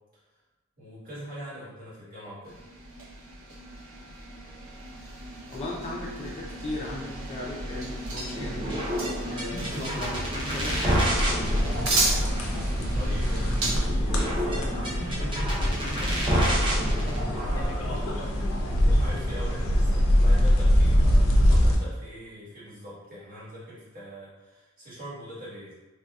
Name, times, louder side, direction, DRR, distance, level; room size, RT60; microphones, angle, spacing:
voice 1, 0.8-2.6 12.9-18.3 18.8-25.7, equal, 40° right, -9 dB, 1.2 m, -43 dB
sound 1, 2.4-13.8, right 2 dB, 80° right, 0.7 m, -34 dB
voice 2, 5.5-8.7 9.0-10.2 10.5-11.2, left 2 dB, 30° left, -3 dB, 0.4 m, -37 dB
sound 2, 8.3-17.7, equal, 25° right, 0.6 m, -29 dB
sound 3, 11.1-21.8, equal, 85° left, 0.5 m, -24 dB
3.3 x 2.6 x 2.2 m, 1.1 s
head